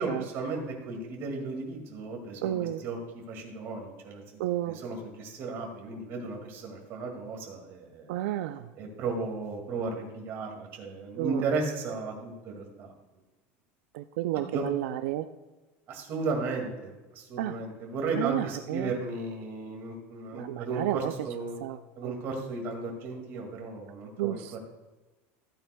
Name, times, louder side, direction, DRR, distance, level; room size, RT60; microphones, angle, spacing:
voice 1, 0.0-3.0 3.3-4.2 4.6-8.1 8.8-12.9 14.3-14.6 15.9-21.6 22.0-24.6, right 3 dB, 40° right, 1 dB, 2.1 m, -35 dB
voice 2, 2.4-2.8 4.4-4.8 8.1-8.7 11.2-11.4 13.9-15.3 17.4-17.6 18.1-18.9 20.3-21.1 21.6-22.1 24.2-24.6, right 14 dB, 90° right, 10 dB, 0.4 m, -31 dB
15.0 x 8.8 x 2.3 m, 1.2 s
cardioid pair, 175°, 7 cm